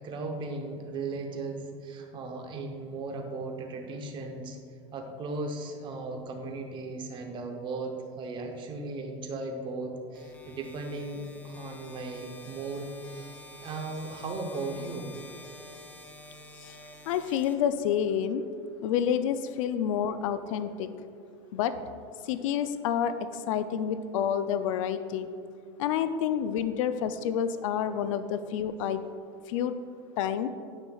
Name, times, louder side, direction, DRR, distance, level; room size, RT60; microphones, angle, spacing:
voice 1, 0.0-4.6 4.9-13.3 13.6-15.2, right 3 dB, 30° right, 4 dB, 0.8 m, -37 dB
sound 1, 10.1-18.2, left 1 dB, 10° left, 0.6 m, -49 dB
voice 2, 17.1-18.4 18.8-20.9 21.5-21.7 22.2-25.3 25.8-29.0 29.5-29.7 30.2-30.5, left 9 dB, 85° left, 11 dB, 0.4 m, -29 dB
9.8 x 5.6 x 2.3 m, 2.4 s
supercardioid pair, 145°, 16 cm